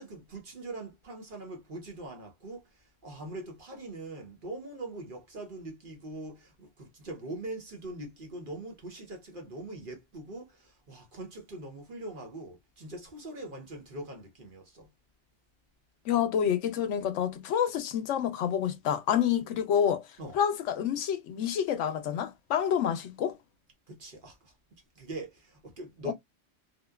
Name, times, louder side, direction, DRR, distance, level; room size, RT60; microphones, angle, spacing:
voice 1, 0.0-14.9 20.2-20.4 23.9-26.1, right 2 dB, 50° right, 0.9 m, -42 dB
voice 2, 16.1-20.0 20.3-23.4 26.1-26.2, left 9 dB, 75° left, 0.9 m, -28 dB
2.7 x 2.2 x 2.2 m
omnidirectional pair, 1.3 m